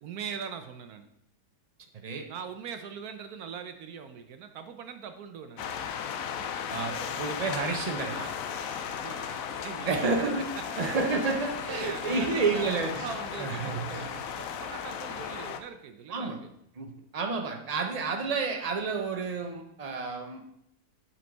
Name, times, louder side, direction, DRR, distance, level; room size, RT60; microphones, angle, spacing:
voice 1, 0.0-1.1 2.3-5.7 8.8-10.2 11.6-16.5, right 7 dB, 70° right, 8 dB, 1.1 m, -41 dB
voice 2, 1.9-2.3 6.7-8.3 9.8-10.5 10.8-13.1 13.4-14.2 16.1-16.4 16.8-20.4, right 4 dB, 45° right, 4 dB, 0.5 m, -30 dB
sound 1, 5.6-15.6, left 7 dB, 65° left, 0.9 m, -36 dB
7.7 x 5.5 x 4.0 m, 0.76 s
omnidirectional pair, 1.8 m